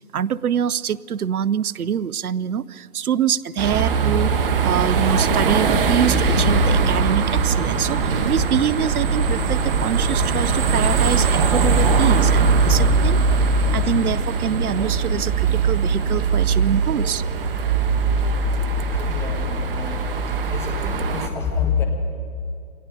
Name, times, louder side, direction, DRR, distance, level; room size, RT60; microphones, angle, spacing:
voice 1, 0.1-13.2 13.7-17.2, right 8 dB, 80° right, 19 dB, 0.7 m, -25 dB
sound 1, 3.6-21.3, right 4 dB, 40° right, 1.5 m, -20 dB
voice 2, 18.9-20.2 20.5-21.8, left 7 dB, 5° left, 2 dB, 1.7 m, -28 dB
27.5 x 21.5 x 5.0 m, 2.3 s
hypercardioid pair, 150°, 44 cm